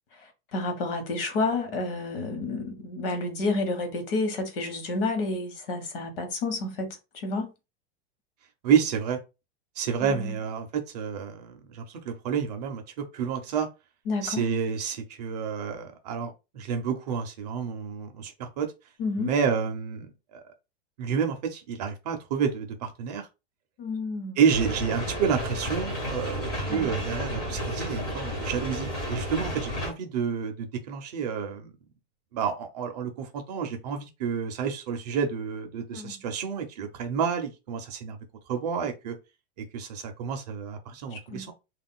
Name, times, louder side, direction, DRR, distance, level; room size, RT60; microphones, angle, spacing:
voice 1, 0.2-7.5 10.0-10.3 14.1-14.4 19.0-19.3 23.8-24.4 26.7-26.9 35.9-36.2 41.1-41.5, left 3 dB, 55° left, 1.0 m, -30 dB
voice 2, 8.6-9.2 9.8-13.7 14.2-18.7 19.2-20.4 21.0-23.3 24.4-31.7 32.3-38.2 38.5-39.2 39.6-41.5, right 7 dB, 40° right, 0.5 m, -29 dB
sound 1, 24.5-29.9, equal, 15° left, 0.5 m, -32 dB
2.3 x 2.1 x 3.6 m
supercardioid pair, 175°, 34 cm